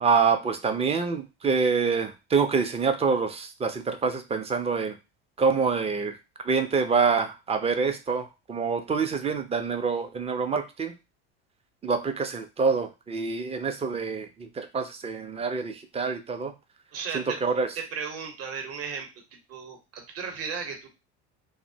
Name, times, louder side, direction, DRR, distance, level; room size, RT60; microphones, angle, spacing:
voice 1, 0.0-4.9 5.4-6.2 6.4-10.9 11.8-16.5 17.1-17.7, right 5 dB, 20° right, 7 dB, 0.4 m, -26 dB
voice 2, 16.9-17.4 17.8-19.1 19.5-20.9, right 6 dB, 45° right, 4 dB, 0.8 m, -35 dB
2.7 x 2.0 x 2.6 m, 0.27 s
hypercardioid pair, 80°, 34 cm